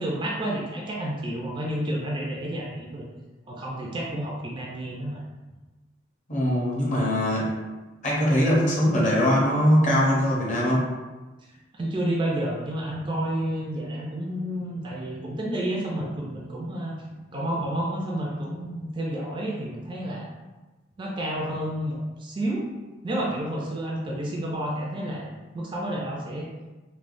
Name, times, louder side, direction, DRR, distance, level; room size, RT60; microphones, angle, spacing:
voice 1, 0.0-3.0 3.5-5.2 11.8-16.9 17.3-20.3 21.0-22.7 23.0-26.5, right 1 dB, 25° right, -3 dB, 0.3 m, -30 dB
voice 2, 6.3-7.5 8.0-10.9, equal, 40° left, -5 dB, 0.7 m, -21 dB
3.1 x 2.1 x 2.5 m, 1.2 s
head